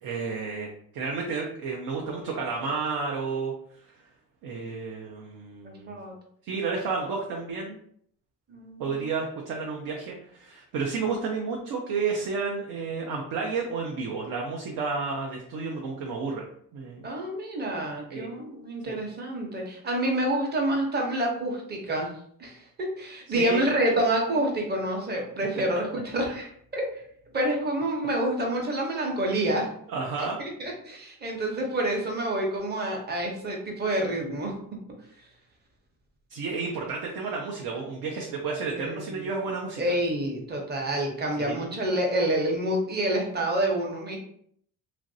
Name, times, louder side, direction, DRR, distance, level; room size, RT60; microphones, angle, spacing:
voice 1, 0.0-3.5 4.4-5.9 6.4-7.8 8.8-16.5 16.7-17.1 18.1-18.3 18.9-19.0 23.3-23.6 29.9-30.4 36.3-39.9 41.4-41.6, right 4 dB, 75° right, -1 dB, 0.6 m, -31 dB
voice 2, 8.5-9.1 17.0-22.1 22.4-27.0 27.3-29.7 30.2-34.6 38.7-39.2 39.8-44.2, right 1 dB, 25° right, 0 dB, 0.7 m, -28 dB
3.0 x 2.5 x 2.6 m, 0.66 s
cardioid pair, 120°, 38 cm